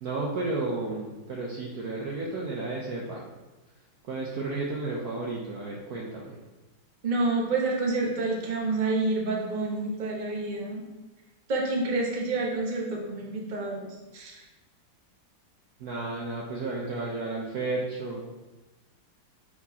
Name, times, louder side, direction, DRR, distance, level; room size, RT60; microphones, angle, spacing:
voice 1, 0.0-3.2 4.0-6.4 15.8-18.2, right 3 dB, 60° right, -3 dB, 1.1 m, -32 dB
voice 2, 7.0-10.8 11.5-13.9 14.1-14.4, right 3 dB, 30° right, -2 dB, 1.0 m, -28 dB
9.1 x 4.3 x 2.8 m, 1.1 s
omnidirectional pair, 2.2 m